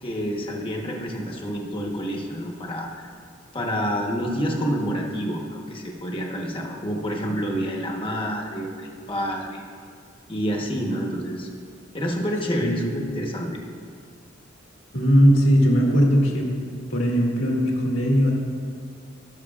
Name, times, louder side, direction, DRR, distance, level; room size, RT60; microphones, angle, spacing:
voice 1, 0.0-3.1 3.5-9.6 10.3-11.5 11.9-13.6, equal, 25° left, -1 dB, 1.1 m, -28 dB
voice 2, 12.6-12.9 14.9-16.5 16.9-18.3, equal, 80° left, -2 dB, 1.8 m, -19 dB
17.0 x 6.3 x 2.4 m, 2.1 s
head